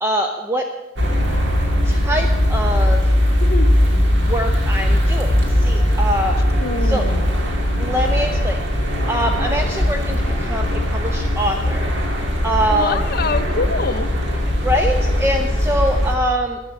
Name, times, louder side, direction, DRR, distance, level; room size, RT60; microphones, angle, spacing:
voice 1, 0.0-0.7 1.8-3.0 4.3-5.3 5.6-6.4 6.8-7.1 7.8-8.6 9.1-11.9 12.4-13.0 14.6-16.6, equal, 10° right, 3 dB, 0.8 m, -23 dB
sound 1, 1.0-16.2, equal, 55° right, 2.3 m, -19 dB
voice 2, 6.6-7.2 9.4-9.5 12.7-14.1, left 3 dB, 45° left, 11 dB, 0.7 m, -25 dB
12.0 x 11.0 x 7.7 m, 1.1 s
head